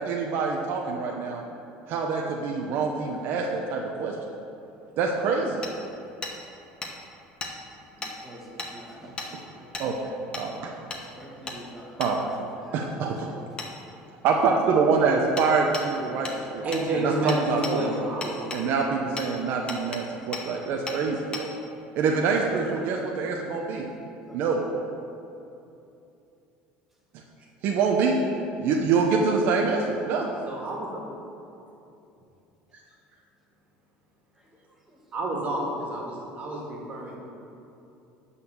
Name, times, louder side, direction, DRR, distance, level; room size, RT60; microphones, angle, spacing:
voice 1, 0.0-1.4 1.9-4.2 5.0-5.6 9.8-10.7 12.0-12.2 12.7-13.3 14.2-16.6 17.0-17.1 17.5-18.0 18.5-21.5 21.9-23.9 24.3-24.6 27.6-28.2 28.6-30.3, right 5 dB, 60° right, 0 dB, 0.9 m, -25 dB
Hammer, 5.6-5.7 6.2-6.4 6.8-6.9 7.4-7.5 8.0-8.1 8.6-8.7 9.2-9.3 9.7-9.9 10.3-10.5 10.9-11.0 11.5-11.6 12.0-12.1 13.6-13.7 15.4-15.5 15.7-15.9 16.3-16.4 16.7-16.9 17.3-17.8 18.2-18.6 19.2-19.3 19.7-20.0 20.3-20.5 20.9-21.0 21.3-21.5, left 3 dB, 25° left, 1.3 m, -34 dB
voice 2, 8.0-10.1 10.9-12.3 12.6-13.8 24.3-24.4 34.4-34.5 34.9-35.0, equal, 5° right, -3 dB, 1.9 m, -48 dB
voice 3, 8.9-9.3 9.6-9.8 16.6-18.4 27.4-27.5 30.5-31.0 32.7-32.8 35.1-37.2, right 1 dB, 40° right, -2 dB, 2.1 m, -30 dB
12.0 x 4.2 x 7.2 m, 2.8 s
cardioid pair, 125°, 4 cm